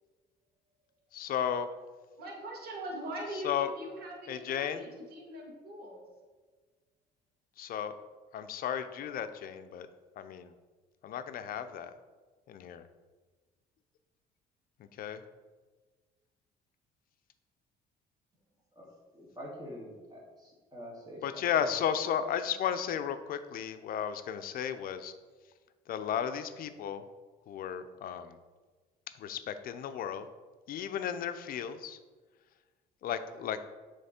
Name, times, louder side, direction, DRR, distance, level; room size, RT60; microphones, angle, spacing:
voice 1, 1.1-1.7 3.4-3.7 4.3-4.9 7.6-7.9 8.3-9.9 10.2-10.5 11.0-11.9 12.5-12.8 15.0-15.2 21.2-25.1 25.9-27.0 27.5-28.4 29.2-30.3 30.7-32.0 33.0-33.6, left 9 dB, 60° left, 10 dB, 0.5 m, -34 dB
voice 2, 2.2-6.1, right 1 dB, 65° right, 0 dB, 1.6 m, -41 dB
voice 3, 18.8-21.7, equal, 20° right, -3 dB, 2.0 m, -46 dB
7.6 x 3.2 x 4.3 m, 1.3 s
cardioid pair, 110°, 17 cm